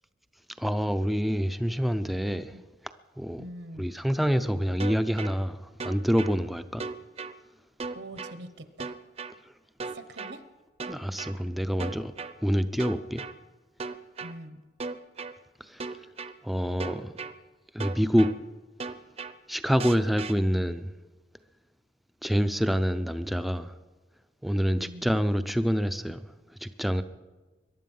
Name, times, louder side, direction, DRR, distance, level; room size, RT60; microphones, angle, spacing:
voice 1, 0.6-2.5 3.2-3.4 3.8-6.8 10.2-10.3 10.9-12.1 12.4-13.2 15.6-15.9 16.4-17.1 17.7-18.3 19.5-20.9 22.2-23.7 24.4-26.2 26.6-27.0, equal, ahead, 0.6 m, -27 dB
voice 2, 3.4-3.9 7.9-9.0 9.8-10.4 14.2-14.6 24.8-25.2, right 1 dB, 70° right, 1.0 m, -44 dB
sound 1, 4.8-5.3 5.8-6.3 6.8-7.3 7.8-8.3 8.8-9.3 9.8-10.3 10.8-11.3 11.8-12.3 12.8-13.3 13.8-14.3 14.8-15.3 15.8-16.3 16.8-17.3 17.8-18.3 18.8-19.3 19.8-20.3, right 4 dB, 35° right, 0.7 m, -36 dB
22.5 x 11.5 x 5.5 m
head